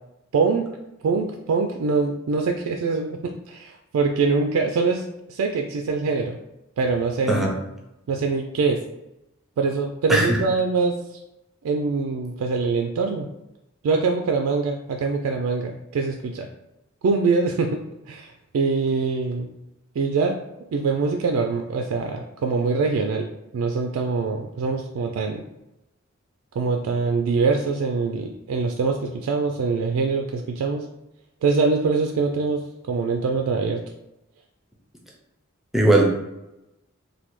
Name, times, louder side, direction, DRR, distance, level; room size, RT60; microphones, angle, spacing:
voice 1, 0.3-0.7 1.0-5.0 5.3-6.4 6.8-7.5 8.1-8.8 9.6-11.0 11.6-13.3 13.8-16.5 17.0-17.8 18.1-19.5 20.0-20.4 20.7-23.3 23.5-25.4 26.6-30.9 31.4-33.8, right 4 dB, 85° right, 3 dB, 0.3 m, -23 dB
voice 2, 35.7-36.0, right 1 dB, ahead, -1 dB, 0.5 m, -18 dB
3.2 x 2.2 x 3.0 m, 0.91 s
head